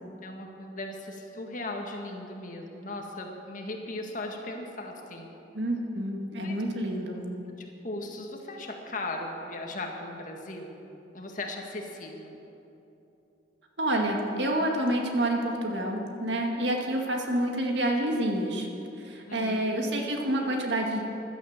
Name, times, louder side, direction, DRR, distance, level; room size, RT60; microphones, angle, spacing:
voice 1, 0.2-5.3 6.4-6.6 7.6-10.7 11.1-12.4 19.3-19.7, left 2 dB, 45° left, 2 dB, 1.9 m, -38 dB
voice 2, 5.5-7.3 13.8-18.7 19.0-21.0, right 1 dB, 70° right, 1 dB, 2.0 m, -28 dB
15.0 x 11.5 x 7.4 m, 3.0 s
head